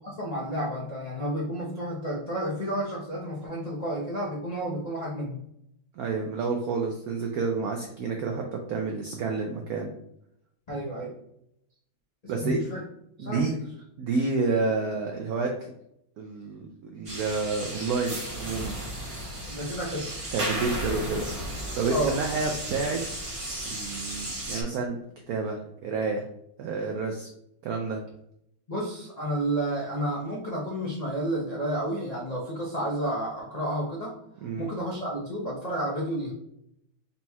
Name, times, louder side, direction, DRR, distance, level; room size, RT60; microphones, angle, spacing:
voice 1, 0.0-5.4 10.7-11.1 12.2-12.8 13.2-13.6 19.5-20.2 21.9-22.2 28.7-34.1 34.6-36.3, right 1 dB, 70° left, -7 dB, 0.3 m, -31 dB
voice 2, 6.0-9.9 12.3-12.6 13.2-13.5 14.0-15.7 16.2-18.8 20.3-21.3 21.7-23.0 23.7-25.0 25.3-26.2 26.6-27.3 27.6-28.0 34.4-34.7, right 4 dB, 85° right, 2 dB, 0.8 m, -29 dB
sound 1, 17.1-24.6, right 1 dB, 40° right, 0.4 m, -34 dB
4.2 x 4.2 x 2.3 m, 0.75 s
omnidirectional pair, 2.2 m